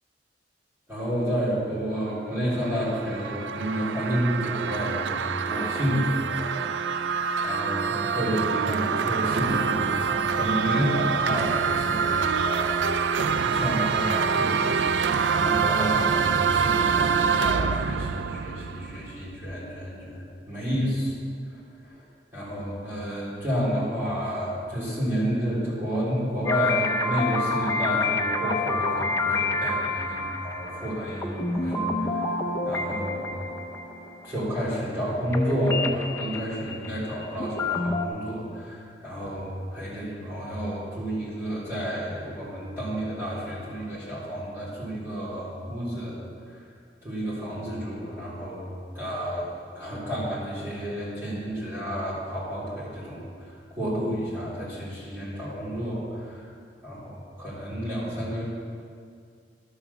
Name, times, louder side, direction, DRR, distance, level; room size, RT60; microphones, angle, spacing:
voice 1, 0.9-6.5 6.9-7.1 7.4-13.2 13.4-21.2 21.5-22.0 22.3-32.4 32.6-33.2 34.2-46.2 46.5-46.7 47.0-48.7 48.9-56.5 56.8-57.0 57.4-58.4, equal, 15° right, -10 dB, 3.5 m, -30 dB
sound 1, 2.4-19.4, right 6 dB, 90° right, 0.4 m, -26 dB
sound 2, 26.5-35.0 35.3-38.1, left 3 dB, 15° left, 0.7 m, -28 dB
12.0 x 7.2 x 7.1 m, 2.2 s
head